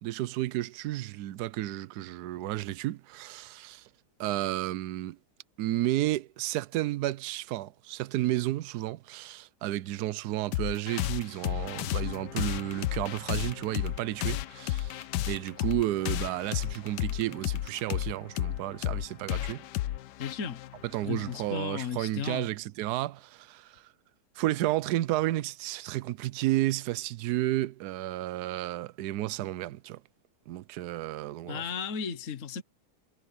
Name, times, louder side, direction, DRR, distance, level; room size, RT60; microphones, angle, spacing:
voice 1, 0.0-3.9 4.2-5.2 5.6-19.6 20.9-23.8 24.4-30.0 30.5-31.6, right 15 dB, 80° right, 1.1 m, -32 dB
sound 1, 10.5-21.6, left 14 dB, 90° left, 1.3 m, -33 dB
voice 2, 20.2-20.6 21.0-22.5 31.5-32.6, left 7 dB, 50° left, 1.6 m, -35 dB
omnidirectional pair, 1.8 m